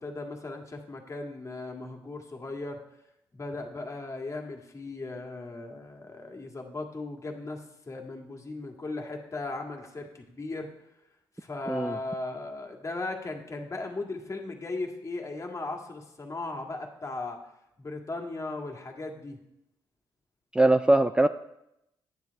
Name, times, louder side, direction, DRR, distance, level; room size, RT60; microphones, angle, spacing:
voice 1, 0.0-2.8 3.3-10.7 11.4-17.4 17.8-19.4, left 2 dB, 35° left, 2 dB, 1.9 m, -37 dB
voice 2, 11.7-12.0 20.5-21.3, right 2 dB, 10° right, 10 dB, 0.3 m, -21 dB
9.8 x 7.5 x 4.7 m, 0.83 s
supercardioid pair, 60°, 9 cm